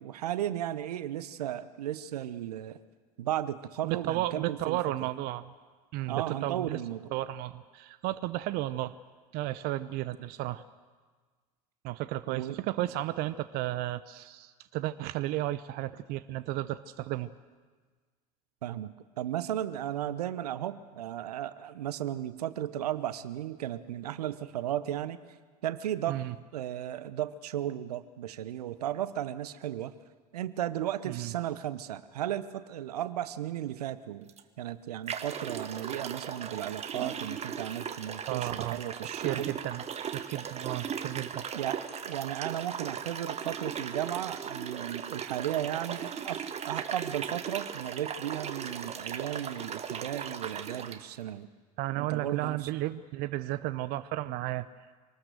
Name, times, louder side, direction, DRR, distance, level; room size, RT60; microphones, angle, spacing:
voice 1, 0.0-2.8 3.2-4.8 6.1-7.1 12.3-12.6 18.6-25.2 25.6-26.2 26.5-29.9 30.3-34.3 34.6-39.5 41.5-41.8 42.1-51.5 52.0-52.7, right 11 dB, 75° right, 14 dB, 0.9 m, -35 dB
voice 2, 3.8-5.5 5.9-6.8 7.1-8.9 9.3-10.6 11.8-17.3 26.1-26.3 31.1-31.3 38.3-38.8 39.2-39.8 40.1-41.5 51.8-54.7, right 15 dB, 50° right, 13 dB, 0.7 m, -33 dB
sound 1, 34.3-34.4 35.1-51.0, right 7 dB, 30° right, 1.5 m, -38 dB
25.5 x 19.5 x 6.6 m, 1.4 s
hypercardioid pair, 75°, 20 cm